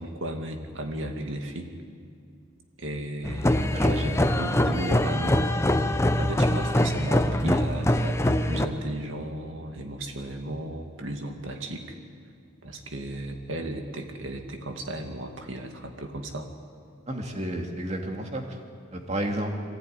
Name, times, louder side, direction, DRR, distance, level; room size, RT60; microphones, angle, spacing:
voice 1, 0.0-1.7 2.8-5.4 6.2-11.9 12.6-16.5, right 1 dB, 75° right, 4 dB, 2.3 m, -35 dB
sound 1, 3.2-8.7, left 1 dB, 15° left, 0.8 m, -23 dB
voice 2, 17.1-18.4 18.9-19.5, right 1 dB, 35° right, 2 dB, 2.4 m, -31 dB
23.0 x 15.5 x 9.5 m, 2.3 s
head